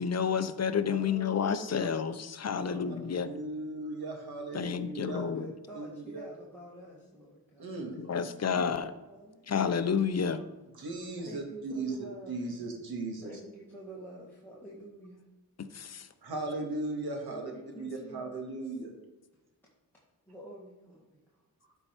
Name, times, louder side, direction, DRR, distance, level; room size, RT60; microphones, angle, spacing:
voice 1, 0.0-3.3 4.5-5.5 8.0-8.9 9.5-10.4 15.7-16.1, left 6 dB, 40° left, 11 dB, 0.6 m, -30 dB
voice 2, 0.9-1.9 2.5-2.9 4.5-8.0 8.3-8.6 9.1-9.5 11.2-12.8 13.2-15.3 17.3-18.3 20.3-21.2, right 1 dB, 5° left, -7 dB, 1.8 m, -48 dB
voice 3, 3.1-5.2 5.7-6.3 7.6-8.1 10.7-12.0 12.3-13.3 16.2-18.9, right 2 dB, 70° right, 2 dB, 1.9 m, -37 dB
13.0 x 4.6 x 4.4 m, 1.1 s
wide cardioid pair, 110°, 38 cm